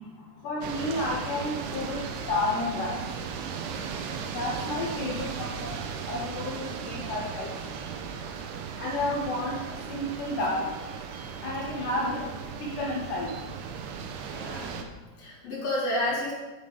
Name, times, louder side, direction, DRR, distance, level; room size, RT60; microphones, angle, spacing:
voice 1, 0.4-2.0 2.3-3.3 4.3-5.5 6.1-7.6 8.8-10.8 11.4-12.3 12.6-13.3, left 2 dB, 65° left, -3 dB, 2.2 m, -31 dB
sound 1, 0.6-14.8, right 6 dB, 80° right, 2.6 m, -37 dB
voice 2, 4.8-5.2 11.8-12.2 14.3-14.8 15.2-16.3, left 1 dB, 50° left, -4 dB, 2.2 m, -32 dB
9.4 x 5.8 x 4.9 m, 1.2 s
omnidirectional pair, 4.9 m